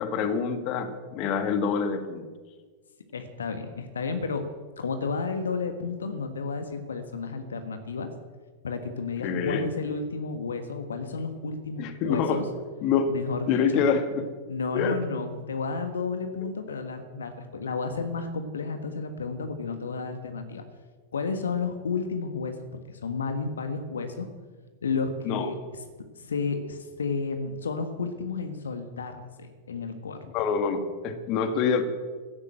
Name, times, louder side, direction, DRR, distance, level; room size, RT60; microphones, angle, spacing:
voice 1, 0.0-2.3 9.2-9.7 11.8-12.4 12.8-13.1 13.5-14.3 14.7-15.0 25.3-25.5 30.3-31.8, left 6 dB, 40° left, 8 dB, 1.8 m, -26 dB
voice 2, 3.1-4.4 4.8-8.1 8.6-12.4 13.1-13.8 14.5-20.6 21.1-24.3 24.8-25.8 26.1-30.3, left 4 dB, 70° left, 7 dB, 1.4 m, -32 dB
15.5 x 12.0 x 7.7 m, 1.4 s
figure-of-eight pair, 90°, 0 cm